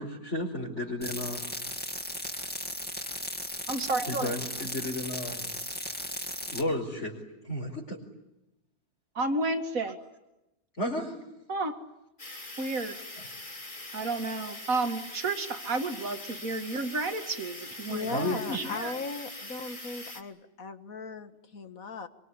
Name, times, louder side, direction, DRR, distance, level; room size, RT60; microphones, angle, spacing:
voice 1, 0.0-1.4 4.1-5.5 6.5-8.0 10.8-11.1 13.2-13.3 18.0-18.6, left 1 dB, 55° left, -3 dB, 5.1 m, -33 dB
sound 1, 1.0-6.6, equal, 5° left, 2.2 m, -36 dB
voice 2, 3.7-4.3 9.2-10.0 11.5-11.8 12.6-13.0 13.9-18.9, right 3 dB, 75° right, 7 dB, 2.3 m, -31 dB
sound 2, 12.2-20.2, left 2 dB, 35° left, 2.9 m, -42 dB
voice 3, 17.9-22.1, left 4 dB, 75° left, 9 dB, 2.0 m, -38 dB
25.5 x 24.0 x 9.8 m, 0.94 s
omnidirectional pair, 1.5 m